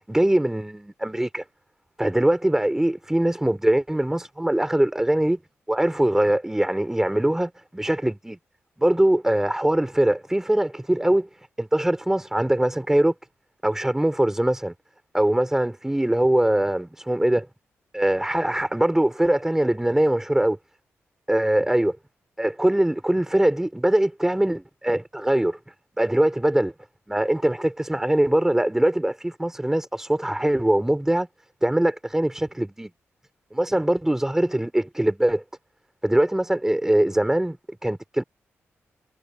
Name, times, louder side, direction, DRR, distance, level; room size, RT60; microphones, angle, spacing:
voice 1, 0.1-1.4 2.0-5.4 5.7-8.4 8.8-11.3 11.6-13.1 13.6-14.7 15.1-17.5 17.9-20.6 21.3-22.0 22.4-25.6 26.0-26.7 27.1-31.3 31.6-32.9 33.5-35.4 36.0-38.2, right 1 dB, 10° right, 3.1 m, -22 dB
cardioid pair, 80°, 5 cm